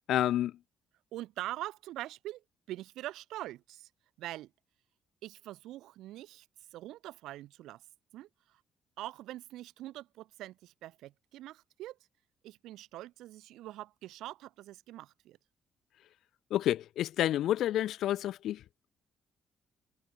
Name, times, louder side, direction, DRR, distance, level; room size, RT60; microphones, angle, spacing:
voice 1, 0.1-0.5 16.5-18.6, left 12 dB, 80° left, 2.3 m, -29 dB
voice 2, 1.1-3.9 4.2-4.5 5.2-6.5 6.7-7.8 8.1-8.6 9.0-12.0 12.4-15.4, right 15 dB, 90° right, 3.7 m, -44 dB
cardioid pair, 90°, 0 cm